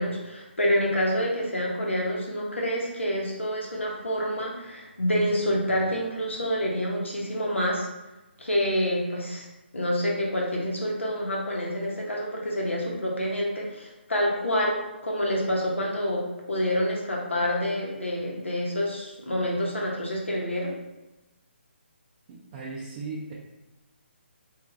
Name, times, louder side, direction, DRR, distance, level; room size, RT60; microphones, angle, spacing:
voice 1, 0.0-7.9 8.4-9.5 9.7-20.7, equal, 90° left, -2 dB, 0.8 m, -27 dB
voice 2, 22.3-23.3, right 3 dB, 30° right, -5 dB, 0.4 m, -37 dB
3.0 x 2.3 x 2.4 m, 1.0 s
figure-of-eight pair, 145°, 6 cm